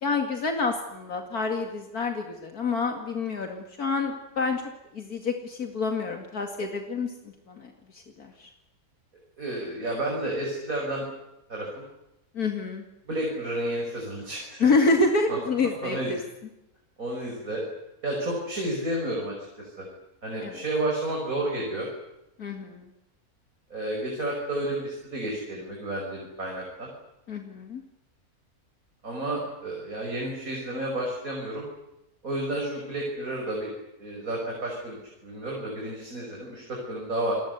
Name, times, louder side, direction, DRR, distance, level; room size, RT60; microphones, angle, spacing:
voice 1, 0.0-4.6 4.9-7.1 7.5-8.5 12.3-12.9 14.6-16.2 20.4-20.6 22.4-22.9 27.3-27.8, left 3 dB, 75° left, 4 dB, 2.7 m, -27 dB
voice 2, 9.4-11.0 11.5-11.8 13.1-14.7 15.3-15.4 15.8-16.1 17.0-17.6 18.0-19.9 20.2-21.9 23.7-26.9 29.0-31.6 32.2-33.7 34.0-37.3, right 1 dB, 65° right, -1 dB, 6.4 m, -31 dB
29.5 x 21.0 x 8.2 m, 0.91 s
omnidirectional pair, 1.6 m